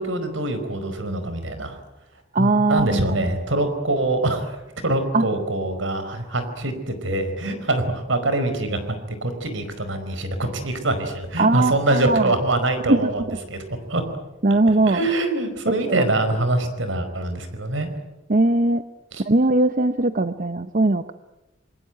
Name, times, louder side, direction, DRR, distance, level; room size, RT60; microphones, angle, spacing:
voice 1, 0.0-1.8 2.4-13.2 13.5-13.6 13.9-14.0 14.9-17.9 19.1-19.2, right 2 dB, 75° right, 9 dB, 4.9 m, -24 dB
voice 2, 2.3-3.2 5.1-5.2 11.4-12.3 12.9-13.2 14.4-15.0 15.7-16.1 18.3-18.8 19.2-21.1, right 2 dB, 45° right, 10 dB, 0.9 m, -20 dB
28.0 x 21.0 x 9.2 m, 1.0 s
head